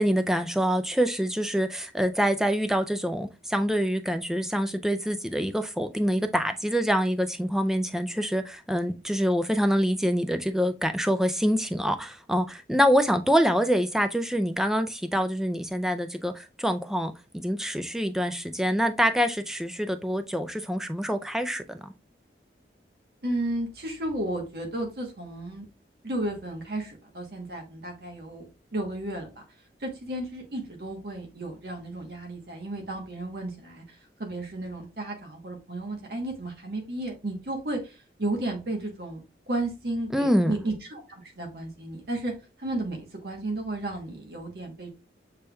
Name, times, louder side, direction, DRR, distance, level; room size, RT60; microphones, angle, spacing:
voice 1, 0.0-21.9 40.1-40.6, equal, 5° right, 0.3 m, -25 dB
voice 2, 23.2-25.6 26.0-29.4 29.8-39.2 39.5-42.3 42.6-44.9, right 1 dB, 60° right, 1.0 m, -33 dB
6.8 x 3.2 x 2.2 m
head